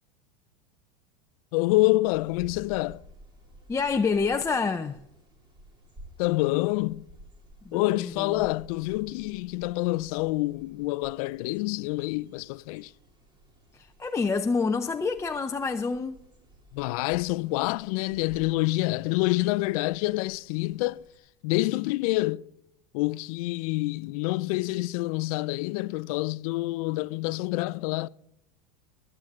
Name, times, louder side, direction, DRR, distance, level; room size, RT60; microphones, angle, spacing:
voice 1, 1.5-3.0 6.2-7.1 7.7-12.9 16.7-21.0 21.4-22.4 22.9-28.1, left 20 dB, 60° left, 0.5 m, -27 dB
sound 1, 2.1-21.2, right 1 dB, 25° right, 2.7 m, -54 dB
voice 2, 3.7-5.0 7.6-8.5 13.7-16.2, left 4 dB, 15° left, 0.6 m, -28 dB
22.0 x 8.0 x 3.6 m
hypercardioid pair, 105°, 20 cm